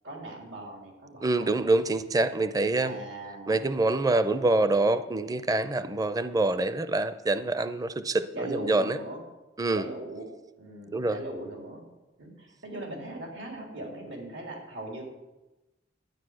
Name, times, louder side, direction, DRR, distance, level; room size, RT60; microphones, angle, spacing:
voice 1, 0.0-1.7 2.8-3.6 8.3-9.2 9.7-10.3 10.6-11.8 12.2-15.0, right 1 dB, 90° right, 0 dB, 3.5 m, -39 dB
voice 2, 1.2-3.0 3.5-9.0 9.6-9.9 10.9-11.2, right 2 dB, 20° right, 12 dB, 0.5 m, -26 dB
12.0 x 9.9 x 6.3 m, 1.1 s
head